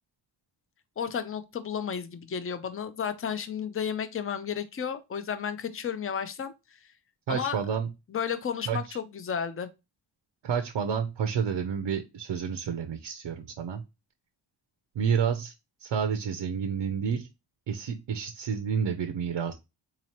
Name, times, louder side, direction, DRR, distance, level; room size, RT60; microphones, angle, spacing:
voice 1, 1.0-6.5 7.3-7.6 8.1-9.7, left 7 dB, 30° left, 0.5 m, -32 dB
voice 2, 7.3-7.9 8.7-9.0 10.4-13.8 15.0-15.5 15.8-17.3 17.7-19.5, right 7 dB, 75° right, 0.6 m, -29 dB
4.0 x 2.9 x 2.8 m
wide cardioid pair, 125°, 45 cm